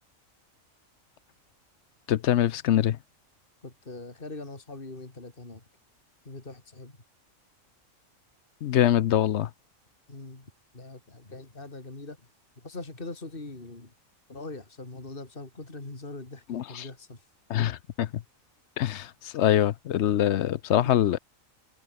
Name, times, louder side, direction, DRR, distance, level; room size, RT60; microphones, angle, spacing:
voice 1, 2.1-3.0 8.6-9.5 16.5-16.8 17.5-18.2 18.8-21.2, left 11 dB, 65° left, 0.8 m, -24 dB
voice 2, 3.6-5.6 6.3-7.0 10.1-12.2 12.6-13.9 14.3-17.3, left 2 dB, 40° left, 3.6 m, -42 dB
omnidirectional pair, 1.4 m